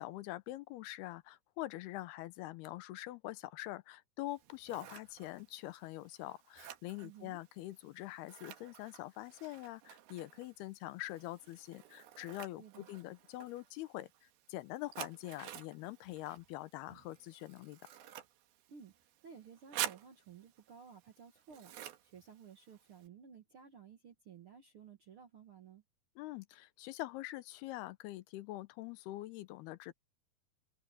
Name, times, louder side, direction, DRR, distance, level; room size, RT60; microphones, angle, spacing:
voice 1, 0.0-17.9 26.2-29.9, left 17 dB, 85° left, 2.8 m, -44 dB
Scissors, 4.3-23.1, right 12 dB, 75° right, 3.2 m, -50 dB
voice 2, 7.0-7.4 12.6-12.9 18.7-25.8, right 7 dB, 60° right, 1.5 m, -55 dB
omnidirectional pair, 4.5 m